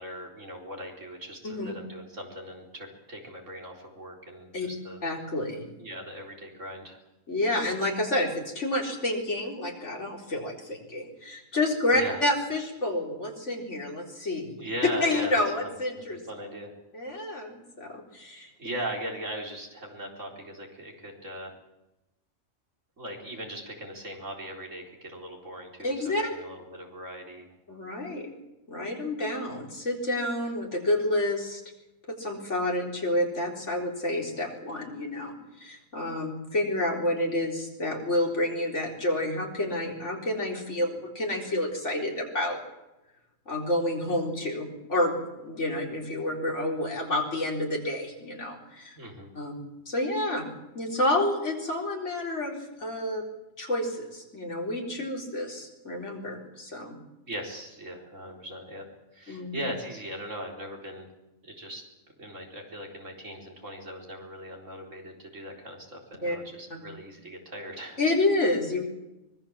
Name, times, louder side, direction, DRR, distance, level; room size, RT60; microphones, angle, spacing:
voice 1, 0.0-5.0 5.8-7.0 11.9-12.2 14.5-15.7 16.3-16.7 18.6-21.6 23.0-27.5 49.0-49.3 57.3-58.9 59.1-61.1 61.4-61.8 62.2-68.0, equal, 60° right, 0 dB, 4.6 m, -39 dB
voice 2, 5.0-5.7 7.3-14.5 15.0-16.2 16.9-18.5 25.8-26.3 27.7-28.3 28.7-31.6 32.1-42.6 43.5-49.0 49.3-49.6 49.9-50.4 50.7-53.2 53.6-57.0 59.3-59.6 66.2-66.4 66.7-66.8 68.0-68.9, left 1 dB, 55° left, -1 dB, 4.4 m, -29 dB
24.5 x 20.5 x 7.4 m, 0.98 s
omnidirectional pair, 1.5 m